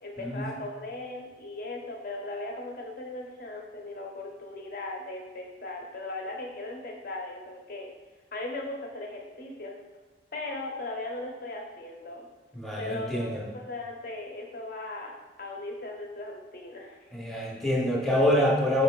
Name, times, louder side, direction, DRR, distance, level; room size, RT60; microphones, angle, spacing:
voice 1, 0.0-7.9 8.3-9.7 10.3-12.3 12.8-13.3 13.5-15.1 15.4-17.0, left 2 dB, 50° left, 0 dB, 0.7 m, -38 dB
voice 2, 12.5-13.4 17.1-18.8, left 1 dB, ahead, -3 dB, 0.7 m, -26 dB
5.2 x 4.1 x 2.2 m, 1.2 s
head